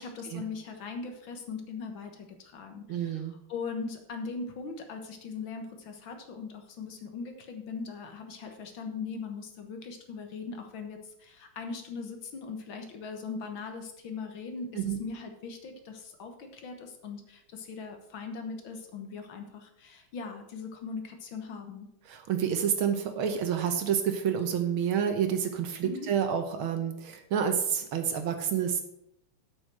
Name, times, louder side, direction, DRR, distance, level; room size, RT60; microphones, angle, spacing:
voice 1, 0.0-21.9 25.8-26.1, left 4 dB, 65° left, 5 dB, 2.0 m, -40 dB
voice 2, 2.9-3.3 14.7-15.0 22.1-28.8, right 8 dB, 75° right, 6 dB, 1.8 m, -29 dB
8.1 x 6.1 x 7.6 m, 0.78 s
omnidirectional pair, 2.3 m